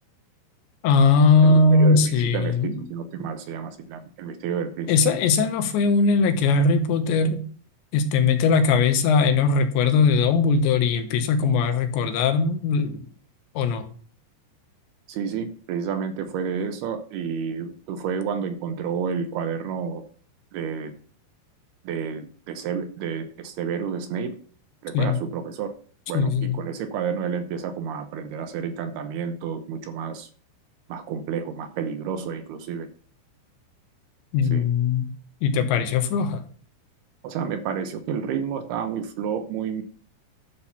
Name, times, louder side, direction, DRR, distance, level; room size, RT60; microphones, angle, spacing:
voice 1, 0.8-2.7 4.9-7.4 7.9-13.0 13.6-13.9 24.9-25.2 26.1-26.6 34.3-35.1 35.4-36.4, left 4 dB, 80° left, 8 dB, 3.5 m, -20 dB
voice 2, 1.4-4.9 15.1-20.0 20.5-20.9 21.8-24.4 24.8-25.7 26.1-30.3 30.9-32.9 34.5-34.7 37.2-39.8, right 7 dB, 75° right, 9 dB, 2.8 m, -30 dB
12.0 x 6.3 x 5.7 m, 0.44 s
omnidirectional pair, 5.2 m